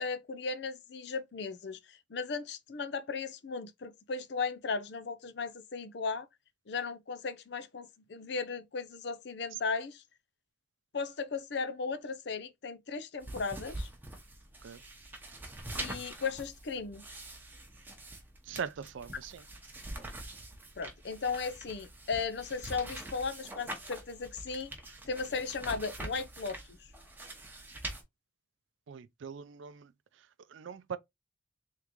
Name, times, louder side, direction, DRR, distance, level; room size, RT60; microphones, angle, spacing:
voice 1, 0.0-6.3 6.7-10.0 10.9-13.9 15.8-17.0 20.8-24.7 25.1-26.6, left 4 dB, 60° left, 0.5 m, -36 dB
sound 1, 13.2-28.0, right 1 dB, 10° right, 0.9 m, -44 dB
voice 2, 18.4-19.4 28.9-31.0, right 6 dB, 80° right, 0.4 m, -42 dB
3.7 x 3.5 x 3.0 m
head